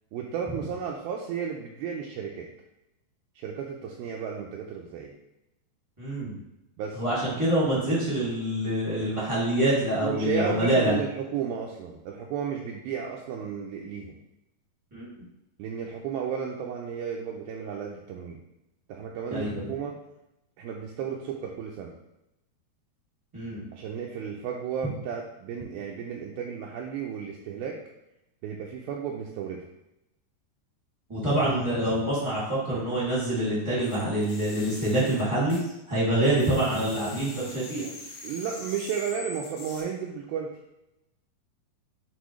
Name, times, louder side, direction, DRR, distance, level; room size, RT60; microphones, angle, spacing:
voice 1, 0.1-2.5 3.4-5.1 6.8-7.0 10.0-14.1 15.6-18.4 18.9-19.9 20.6-21.9 23.7-27.8 28.4-29.6 38.2-40.5, right 7 dB, 80° right, -1 dB, 2.3 m, -33 dB
voice 2, 6.0-6.4 6.9-10.9 14.9-15.1 19.3-19.7 23.3-23.6 31.1-35.6 35.9-37.9, right 1 dB, 15° right, -8 dB, 1.1 m, -26 dB
sound 1, 33.8-36.0 36.2-39.8, left 3 dB, 75° left, 3.0 m, -44 dB
8.2 x 4.3 x 3.1 m, 0.89 s
omnidirectional pair, 4.7 m